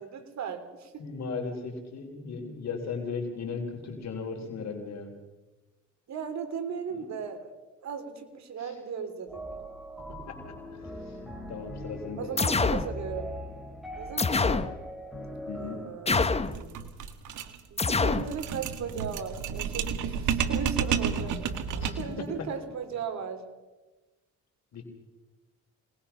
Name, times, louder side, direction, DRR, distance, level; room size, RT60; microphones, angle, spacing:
voice 1, 0.0-0.9 6.1-7.5 7.8-9.4 12.2-13.3 14.0-14.7 15.6-16.8 17.7-23.4, right 6 dB, 65° right, 7 dB, 3.2 m, -37 dB
voice 2, 1.0-5.1 6.9-7.0 8.6-8.7 10.3-10.4 10.7-12.3 14.5-14.6 15.5-15.8 21.8-22.0 24.7-24.9, left 5 dB, 60° left, 3 dB, 3.7 m, -37 dB
sound 1, 9.3-16.5, equal, ahead, 5.1 m, -41 dB
sound 2, 12.4-12.9 14.2-14.7 16.1-16.6 17.8-18.3, left 4 dB, 20° left, 0.9 m, -25 dB
sound 3, 16.5-22.2, right 7 dB, 80° right, 1.8 m, -31 dB
25.0 x 20.0 x 5.8 m, 1.2 s
cardioid pair, 90°, 30 cm